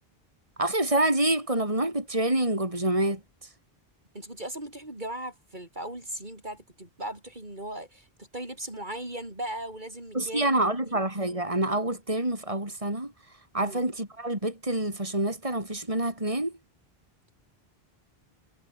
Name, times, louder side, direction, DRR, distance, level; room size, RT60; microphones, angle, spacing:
voice 1, 0.6-3.2 10.1-13.1 13.5-16.5, right 1 dB, 35° right, 4.9 m, -27 dB
voice 2, 4.1-11.0 13.6-13.8, right 1 dB, 50° right, 5.3 m, -38 dB
omnidirectional pair, 1.0 m